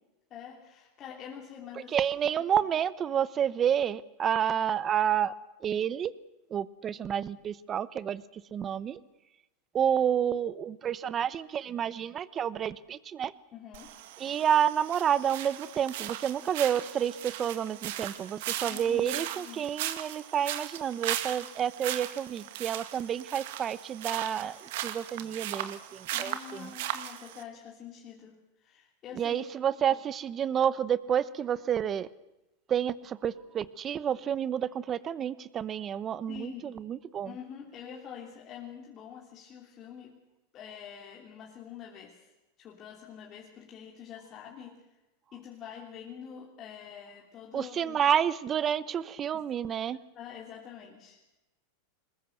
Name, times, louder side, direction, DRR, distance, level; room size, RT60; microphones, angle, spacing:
voice 1, 0.3-1.9 13.5-14.0 18.5-19.8 26.1-29.5 29.9-30.0 36.3-36.8 37.2-40.3 40.5-44.9 45.3-48.0 49.3-49.4 50.1-51.2, left 8 dB, 35° left, 0 dB, 3.1 m, -46 dB
voice 2, 1.9-5.3 5.6-6.1 6.5-9.0 9.7-13.3 14.2-26.7 29.1-32.1 32.7-37.4 47.5-50.0, right 9 dB, 30° right, 18 dB, 1.0 m, -29 dB
sound 1, 13.7-27.4, right 12 dB, 70° right, 2.0 m, -38 dB
22.0 x 20.5 x 7.9 m, 1.0 s
supercardioid pair, 130°, 0 cm